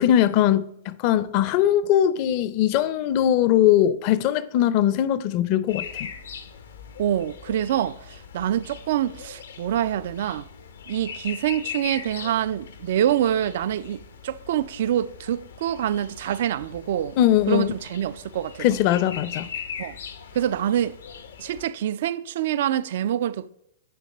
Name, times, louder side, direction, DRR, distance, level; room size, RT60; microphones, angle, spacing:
voice 1, 0.0-6.1 17.2-17.7 18.6-19.5, left 11 dB, 45° left, 0.5 m, -21 dB
sound 1, 5.7-21.7, left 7 dB, 80° left, 0.8 m, -40 dB
voice 2, 7.0-10.5 10.9-17.2 17.5-18.7 19.8-20.0 20.3-21.0 21.4-23.5, right 11 dB, 65° right, 0.3 m, -26 dB
9.3 x 3.2 x 5.4 m
hypercardioid pair, 120°, 0 cm